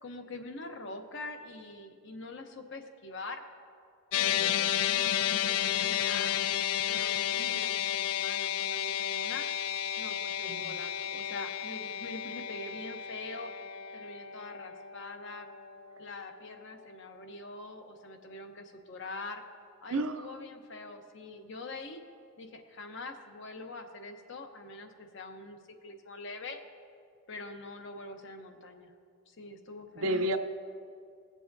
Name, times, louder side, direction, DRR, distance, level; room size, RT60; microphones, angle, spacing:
voice 1, 0.0-3.4 4.1-6.3 6.9-9.6 10.0-13.5 13.9-15.5 16.0-19.4 19.8-22.0 22.4-26.6 27.3-28.9 29.3-30.2, left 2 dB, 55° left, 6 dB, 0.8 m, -44 dB
sound 1, 4.1-16.6, left 10 dB, 80° left, 0.3 m, -32 dB
voice 2, 4.4-4.8 7.3-7.7 10.5-10.8 19.9-20.4 29.9-30.4, right 1 dB, 70° right, 8 dB, 0.6 m, -33 dB
19.5 x 7.5 x 2.7 m, 2.2 s
head